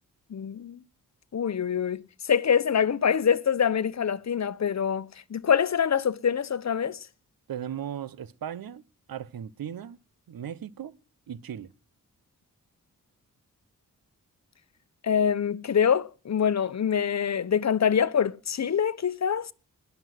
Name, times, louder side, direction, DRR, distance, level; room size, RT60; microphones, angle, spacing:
voice 1, 0.3-0.8 1.3-7.0 15.0-19.5, left 7 dB, 50° left, 0.9 m, -25 dB
voice 2, 7.5-8.8 9.1-10.0 10.3-10.9 11.3-11.7, right 9 dB, 80° right, 1.0 m, -37 dB
20.5 x 7.2 x 7.9 m
cardioid pair, 75°, 35 cm